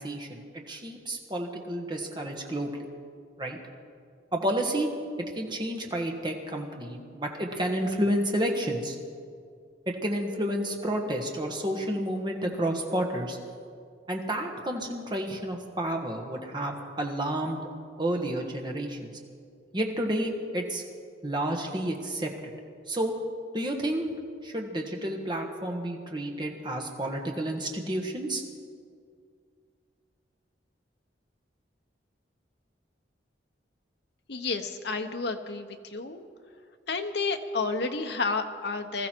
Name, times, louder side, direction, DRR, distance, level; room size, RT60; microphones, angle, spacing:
voice 1, 0.0-2.8 3.4-3.6 4.3-4.9 5.3-9.0 9.9-13.4 14.1-17.7 18.0-19.1 19.7-20.8 21.2-22.5 22.9-23.1 23.5-24.1 24.4-28.4, right 1 dB, 25° right, 2 dB, 1.4 m, -30 dB
voice 2, 34.3-35.7 35.9-36.3 36.9-39.1, left 4 dB, 60° left, 6 dB, 0.9 m, -30 dB
20.0 x 14.0 x 4.5 m, 2.2 s
head